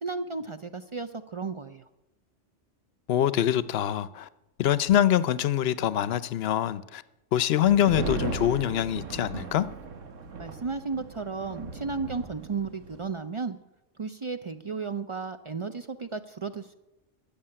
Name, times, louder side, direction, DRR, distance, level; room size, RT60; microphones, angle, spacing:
voice 1, 0.0-1.8 10.4-13.6 14.0-16.7, right 4 dB, 55° right, 0.3 m, -34 dB
voice 2, 3.1-4.3 4.6-7.0 7.3-9.7, left 11 dB, 60° left, 0.8 m, -24 dB
sound 1, 7.6-13.1, right 4 dB, 80° right, 1.5 m, -37 dB
13.5 x 6.9 x 9.9 m
omnidirectional pair, 1.3 m